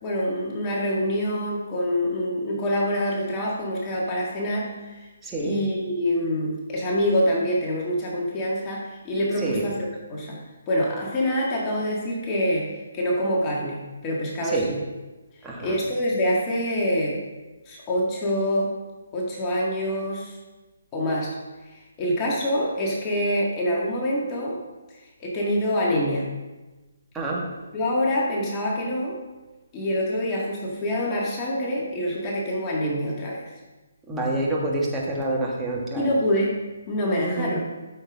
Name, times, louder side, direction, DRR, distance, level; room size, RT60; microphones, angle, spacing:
voice 1, 0.0-5.1 5.4-10.4 10.7-14.8 15.6-17.2 17.7-18.7 19.1-20.4 20.9-21.4 21.7-24.6 24.9-26.3 27.7-29.2 29.7-33.5 36.0-36.6 36.9-37.6, equal, 20° left, -4 dB, 2.1 m, -26 dB
voice 2, 5.2-5.6 9.4-9.6 14.4-14.7 15.4-15.8 27.1-27.5 34.1-36.1 37.2-37.6, right 2 dB, 10° right, -4 dB, 2.1 m, -27 dB
13.0 x 6.8 x 3.8 m, 1.2 s
figure-of-eight pair, 140°, 0 cm